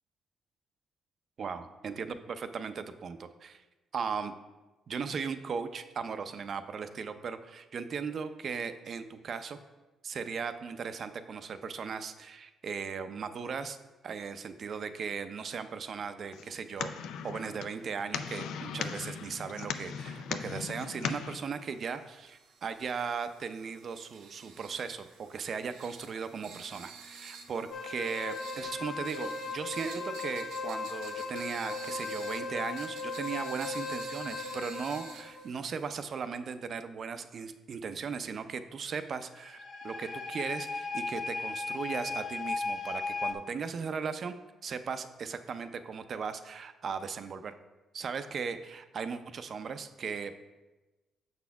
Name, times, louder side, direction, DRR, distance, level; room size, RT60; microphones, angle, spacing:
voice 1, 1.4-3.6 3.9-4.3 4.9-9.6 10.0-13.8 14.0-16.9 17.2-44.3 44.6-47.5 47.9-50.4, right 6 dB, 55° right, 10 dB, 0.5 m, -37 dB
sound 1, 16.3-21.4, left 7 dB, 85° left, 0.4 m, -38 dB
sound 2, 21.3-36.2, right 5 dB, 90° right, 0.9 m, -51 dB
sound 3, 27.7-35.6 39.3-43.3, left 4 dB, 65° left, 1.2 m, -37 dB
7.0 x 4.2 x 5.7 m, 1.1 s
cardioid pair, 90°, 0 cm